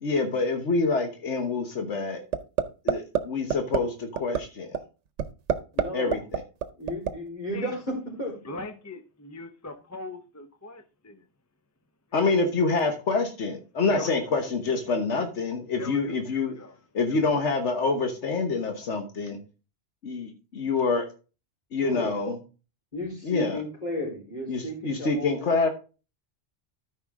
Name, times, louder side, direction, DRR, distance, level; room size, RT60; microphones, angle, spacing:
voice 1, 0.0-2.2 2.8-4.8 5.9-6.4 12.1-16.5 16.9-19.4 20.0-21.0 21.7-22.4 23.2-23.6 24.5-25.7, left 4 dB, 85° left, 1.5 m, -26 dB
sound 1, 2.3-2.6 2.9-3.2 3.5-3.8 4.2-4.4 4.7-4.8 5.2-5.8 6.1-7.1, right 8 dB, 90° right, 1.1 m, -23 dB
voice 2, 5.7-6.2 6.8-8.6 21.8-22.2 22.9-25.7, equal, 40° left, 4.2 m, -33 dB
voice 3, 8.4-11.2 12.1-12.3 13.9-14.1 15.8-16.8 17.1-17.3, left 2 dB, 15° left, 0.6 m, -40 dB
13.0 x 5.4 x 3.6 m
omnidirectional pair, 1.2 m